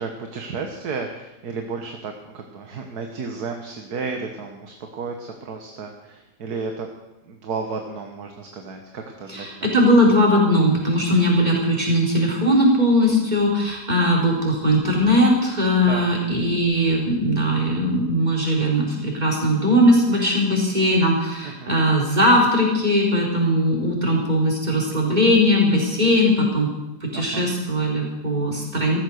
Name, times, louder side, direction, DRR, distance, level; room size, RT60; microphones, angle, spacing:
voice 1, 0.0-6.9 7.2-9.7 11.2-11.3 15.8-16.1 21.4-21.7 27.1-27.5, right 4 dB, 70° right, 4 dB, 1.8 m, -33 dB
voice 2, 9.3-26.7 27.0-29.0, equal, 25° right, -2 dB, 4.4 m, -19 dB
15.0 x 14.5 x 6.5 m, 0.98 s
omnidirectional pair, 1.7 m